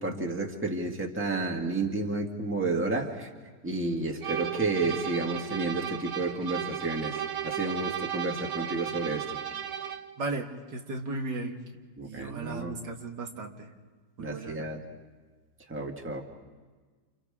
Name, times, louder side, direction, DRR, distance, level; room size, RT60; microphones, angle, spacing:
voice 1, 0.0-3.3 3.6-7.2 7.4-9.4 12.0-12.8 14.2-14.8 15.7-16.2, right 3 dB, 10° right, 1 dB, 1.7 m, -31 dB
sound 1, 4.2-10.2, right 9 dB, 50° right, 1.3 m, -35 dB
voice 2, 10.2-11.6 12.0-13.7 14.2-14.7, right 3 dB, 85° right, 2 dB, 2.3 m, -36 dB
29.5 x 29.0 x 3.6 m, 1.4 s
omnidirectional pair, 1.8 m